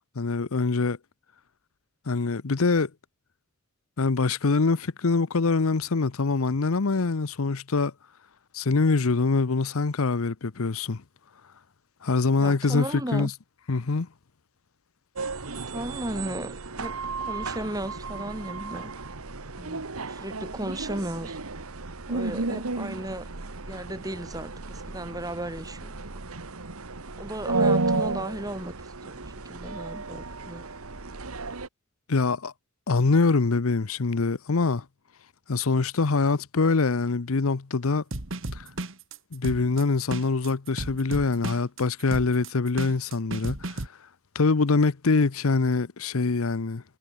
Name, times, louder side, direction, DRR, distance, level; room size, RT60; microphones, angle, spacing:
voice 1, 0.2-1.0 2.1-2.9 4.0-7.9 8.5-11.0 12.0-12.9 13.1-13.3 13.7-14.1 32.1-32.5 32.9-34.8 35.5-38.0 38.5-38.7 39.3-43.9 44.3-46.8, left 3 dB, 75° left, 0.8 m, -24 dB
voice 2, 12.4-13.3 15.7-18.9 19.6-21.4 22.1-23.3 23.7-25.9 27.2-28.7 29.0-30.7, right 1 dB, 15° right, 3.3 m, -35 dB
sound 1, 15.2-31.7, right 3 dB, 80° right, 1.6 m, -33 dB
sound 2, 38.1-43.9, right 2 dB, 60° right, 2.1 m, -34 dB
head